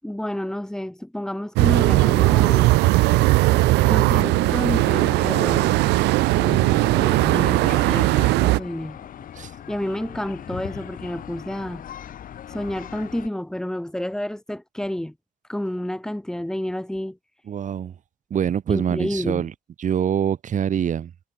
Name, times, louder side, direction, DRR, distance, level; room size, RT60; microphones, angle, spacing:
voice 1, 0.0-2.8 3.1-3.2 3.8-5.8 6.3-9.1 9.7-11.8 12.5-15.1 15.5-17.2 18.7-19.5, left 1 dB, 5° left, 6.5 m, -30 dB
sound 1, 1.6-8.6, right 21 dB, 90° right, 1.5 m, -18 dB
sound 2, 2.6-13.3, left 10 dB, 55° left, 3.6 m, -39 dB
voice 2, 17.5-18.0 18.3-19.5 19.8-21.1, right 9 dB, 50° right, 5.2 m, -24 dB
cardioid pair, 110°, 17 cm